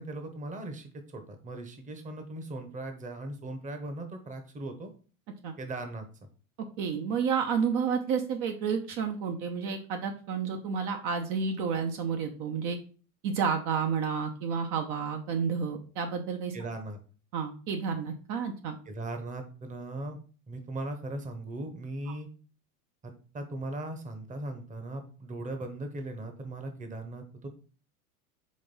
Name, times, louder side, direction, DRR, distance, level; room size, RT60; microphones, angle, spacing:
voice 1, 0.0-4.9 5.6-6.1 16.5-17.0 18.9-20.2 20.5-22.3 23.0-27.5, right 2 dB, 15° right, 6 dB, 1.1 m, -38 dB
voice 2, 6.8-12.8 13.2-16.5 17.3-18.8, right 6 dB, 45° right, 4 dB, 0.9 m, -30 dB
5.3 x 3.4 x 5.3 m, 0.38 s
hypercardioid pair, 110°, 45 cm